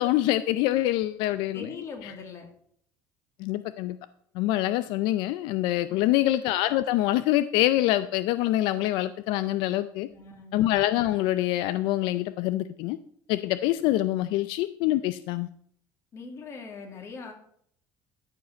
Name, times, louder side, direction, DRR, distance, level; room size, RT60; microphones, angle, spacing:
voice 1, 0.0-1.7 3.4-4.0 4.3-10.1 10.5-13.0 13.3-15.5, left 15 dB, 75° left, 13 dB, 0.4 m, -25 dB
voice 2, 1.5-2.5 5.9-6.3 10.1-10.5 16.1-17.3, left 4 dB, 35° left, 3 dB, 2.4 m, -42 dB
13.5 x 4.8 x 6.2 m, 0.66 s
cardioid pair, 150°, 8 cm